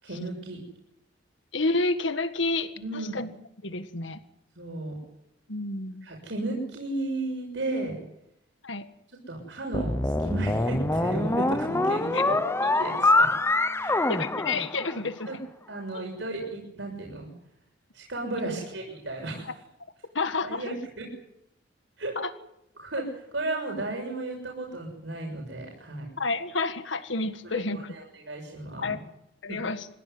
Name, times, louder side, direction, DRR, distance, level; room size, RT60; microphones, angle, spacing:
voice 1, 0.0-0.6 2.8-3.2 4.6-4.9 6.0-8.0 9.3-12.1 12.8-13.3 13.8-14.0 15.3-15.4 15.7-17.3 17.9-19.5 20.4-21.1 22.0-22.2 22.8-26.1 27.5-29.0 29.5-29.6, right 2 dB, 70° right, 0 dB, 6.8 m, -34 dB
voice 2, 1.5-3.3 3.6-4.2 5.5-6.1 8.6-8.9 12.1-12.5 14.1-15.3 15.9-16.0 19.4-19.5 20.1-20.7 22.2-22.3 26.2-27.9 28.8-29.0 29.4-29.9, left 3 dB, 75° left, 10 dB, 1.8 m, -30 dB
sound 1, 9.7-15.2, left 2 dB, 15° left, 0.9 m, -25 dB
25.5 x 16.0 x 9.8 m, 0.80 s
head